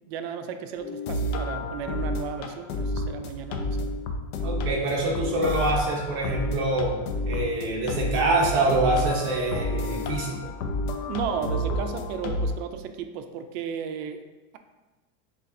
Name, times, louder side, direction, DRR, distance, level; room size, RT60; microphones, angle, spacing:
voice 1, 0.1-3.9 11.1-14.2, right 7 dB, 70° right, 7 dB, 0.5 m, -34 dB
sound 1, 0.8-12.5, left 1 dB, 70° left, 0.6 m, -30 dB
voice 2, 4.4-7.0 7.3-10.4, right 2 dB, 40° right, -1 dB, 0.9 m, -25 dB
6.4 x 2.4 x 2.6 m, 1.1 s
supercardioid pair, 155°, 32 cm